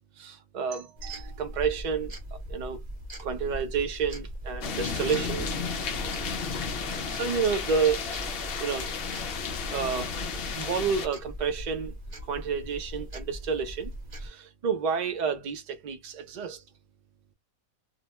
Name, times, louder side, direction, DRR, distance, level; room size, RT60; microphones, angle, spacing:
voice 1, 0.2-2.1 2.5-2.8 3.2-5.5 6.8-8.0 8.6-8.9 9.7-10.1 10.5-11.9 12.3-13.9 14.2-16.6, right 6 dB, 70° right, 0.4 m, -30 dB
sound 1, 1.0-14.3, equal, 40° right, 0.8 m, -40 dB
sound 2, 4.6-11.1, left 5 dB, 65° left, 0.6 m, -33 dB
2.6 x 2.1 x 2.9 m
omnidirectional pair, 1.5 m